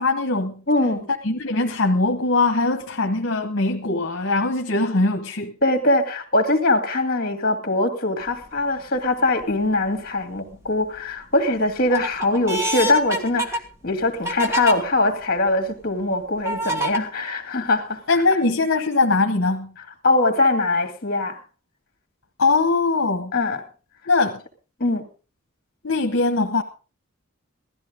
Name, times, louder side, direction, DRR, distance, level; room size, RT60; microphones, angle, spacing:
voice 1, 0.0-0.6 1.2-5.5 18.1-19.7 22.4-23.3 24.1-24.4 25.8-26.6, left 3 dB, 60° left, 1.2 m, -21 dB
voice 2, 0.7-1.1 5.6-18.0 20.0-21.4 23.3-23.6 24.8-25.0, left 2 dB, 45° left, 2.3 m, -22 dB
sound 1, 8.3-8.6 9.2-9.9 10.4-11.0 11.5-14.8 15.4-15.5 16.5-17.0, right 1 dB, 15° right, 1.8 m, -27 dB
17.0 x 13.0 x 3.7 m
head